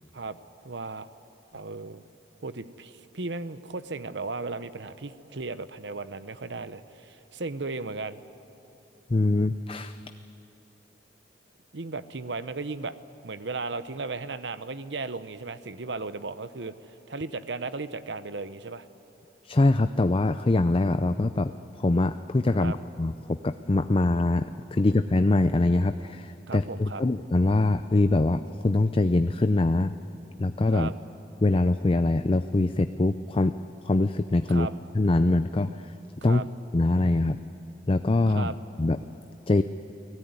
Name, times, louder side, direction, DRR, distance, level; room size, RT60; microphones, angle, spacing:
voice 1, 0.6-1.1 1.5-2.0 2.4-8.2 11.7-12.9 13.2-16.7 17.1-18.8 22.6-22.8 26.5-27.0 30.7-30.9 34.5-34.7 36.2-36.5 38.3-38.5, right 3 dB, 70° right, 13 dB, 0.9 m, -35 dB
voice 2, 9.1-9.9 19.5-21.5 21.8-23.1 23.4-24.5 24.7-29.9 30.4-30.9 31.4-33.6 33.8-34.7 34.9-35.7 36.2-36.4 36.7-37.4 37.9-38.5 38.8-39.0 39.5-39.6, left 2 dB, 30° left, 10 dB, 0.5 m, -23 dB
29.0 x 19.0 x 9.6 m, 2.9 s
head